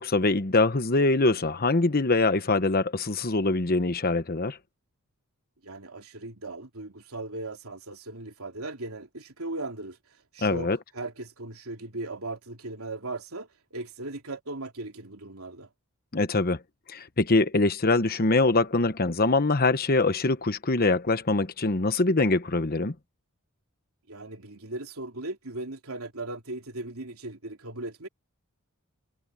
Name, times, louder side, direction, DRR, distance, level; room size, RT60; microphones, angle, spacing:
voice 1, 0.0-4.6 10.4-10.8 16.1-16.6 16.9-22.9, left 3 dB, 45° left, 1.1 m, -23 dB
voice 2, 5.6-10.0 10.3-15.7 24.1-28.1, right 2 dB, 75° right, 3.3 m, -38 dB
head